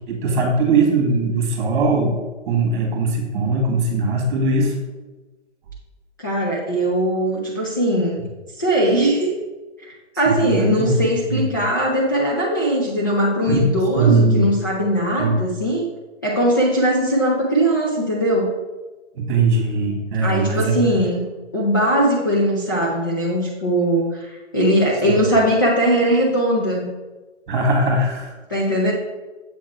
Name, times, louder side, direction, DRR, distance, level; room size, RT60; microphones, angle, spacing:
voice 1, 0.1-2.2 2.5-4.8 10.3-11.5 13.5-13.6 14.0-14.4 15.2-15.4 19.2-20.9 25.0-25.1 27.5-28.3, right 3 dB, 40° right, 2 dB, 1.8 m, -20 dB
voice 2, 6.2-8.2 8.6-9.4 9.8-15.8 16.2-18.5 20.2-21.3 21.5-26.9 28.5-28.9, right 1 dB, 20° left, -5 dB, 0.4 m, -20 dB
7.5 x 3.6 x 4.6 m, 1.2 s
hypercardioid pair, 150°, 37 cm